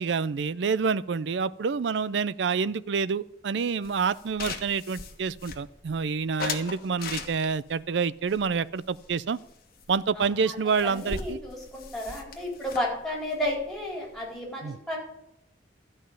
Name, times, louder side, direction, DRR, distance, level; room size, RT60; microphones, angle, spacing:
voice 1, 0.0-9.4 9.9-11.4 14.6-14.8, right 5 dB, 70° right, 17 dB, 0.4 m, -28 dB
sound 1, 3.8-5.9 6.4-7.7 8.3-9.5 9.8-9.9 10.2-10.3 10.5-14.4, left 5 dB, 55° left, 1.4 m, -39 dB
voice 2, 10.2-15.0, left 1 dB, ahead, -3 dB, 4.3 m, -33 dB
13.0 x 5.3 x 8.8 m, 0.81 s
head